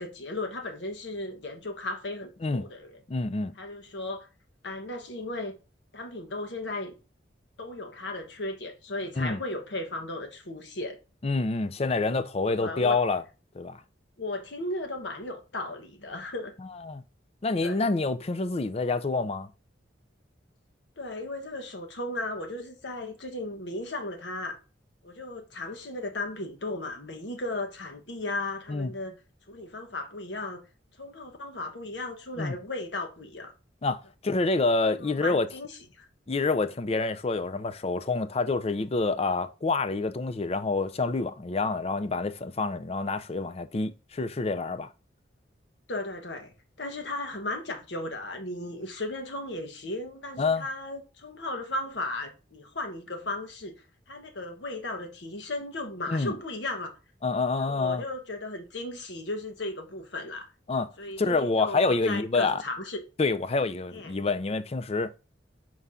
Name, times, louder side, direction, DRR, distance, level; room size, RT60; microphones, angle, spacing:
voice 1, 0.0-3.0 3.6-4.3 4.6-5.5 5.9-6.9 7.6-11.0 12.0-12.1 12.6-13.0 14.2-16.5 17.6-17.8 21.0-24.6 25.0-29.1 29.5-30.6 31.0-33.5 35.0-36.1 45.9-46.5 46.8-53.7 54.1-56.9 57.6-60.5 61.0-63.0 63.9-64.1, left 2 dB, 70° left, 1.3 m, -35 dB
voice 2, 3.1-3.5 9.2-9.4 11.2-13.2 13.5-13.8 16.7-17.0 17.4-19.5 28.7-28.9 32.4-32.6 33.8-35.5 36.3-44.9 50.4-50.6 56.1-56.3 57.2-58.0 60.7-60.9 61.2-62.6 63.2-65.1, left 3 dB, 35° left, 0.5 m, -27 dB
4.7 x 3.7 x 5.6 m
head